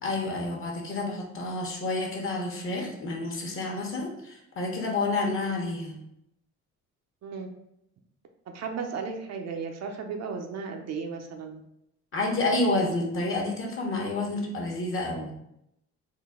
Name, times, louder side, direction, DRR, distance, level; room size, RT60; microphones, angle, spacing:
voice 1, 0.0-6.0 12.1-15.3, left 2 dB, 45° left, 0 dB, 1.0 m, -29 dB
voice 2, 8.5-11.6, right 5 dB, 60° right, 3 dB, 0.6 m, -35 dB
3.8 x 2.2 x 3.6 m, 0.80 s
cardioid pair, 90°, 30 cm